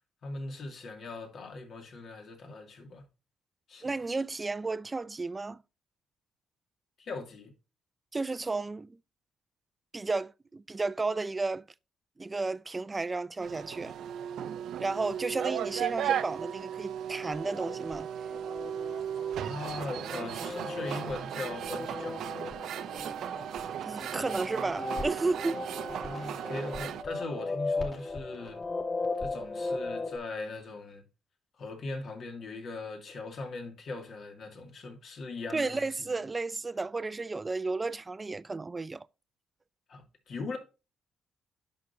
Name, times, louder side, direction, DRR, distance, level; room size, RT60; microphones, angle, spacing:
voice 1, 0.2-3.1 3.7-4.0 7.0-7.5 19.4-22.4 25.9-28.6 29.2-31.0 31.6-35.9 39.9-40.6, left 3 dB, 60° left, 2.4 m, -40 dB
voice 2, 3.8-5.6 8.1-9.0 9.9-11.7 12.2-13.9 14.8-18.1 23.8-25.6 35.5-39.1, right 3 dB, 25° right, 0.5 m, -33 dB
sound 1, 13.4-27.0, right 9 dB, 75° right, 0.6 m, -36 dB
sound 2, 17.2-30.2, left 2 dB, 40° left, 3.0 m, -37 dB
10.5 x 6.4 x 2.8 m
cardioid pair, 90°, 0 cm